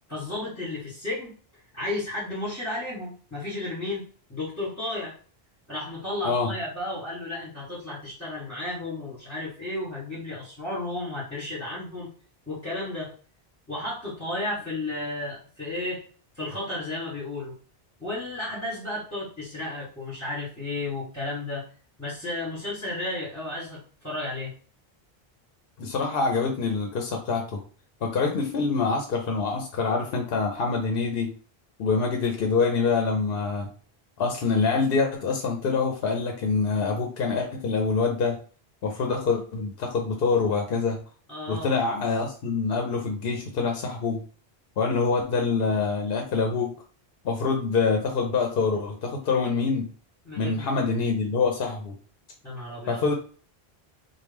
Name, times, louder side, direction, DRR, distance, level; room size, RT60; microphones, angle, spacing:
voice 1, 0.1-1.3 1.7-4.0 4.3-5.1 5.7-12.1 12.5-13.1 13.7-16.0 16.3-17.5 18.0-21.6 22.0-24.5 41.3-41.7 50.2-50.7 52.4-53.0, left 2 dB, 15° left, -10 dB, 1.5 m, -33 dB
voice 2, 25.8-27.6 28.0-31.3 31.8-33.7 34.2-38.4 38.8-41.0 41.5-44.2 44.8-46.7 47.2-49.9 50.4-51.9 52.9-53.1, left 4 dB, 70° left, 3 dB, 0.8 m, -25 dB
3.0 x 2.3 x 3.4 m, 0.41 s
omnidirectional pair, 1.0 m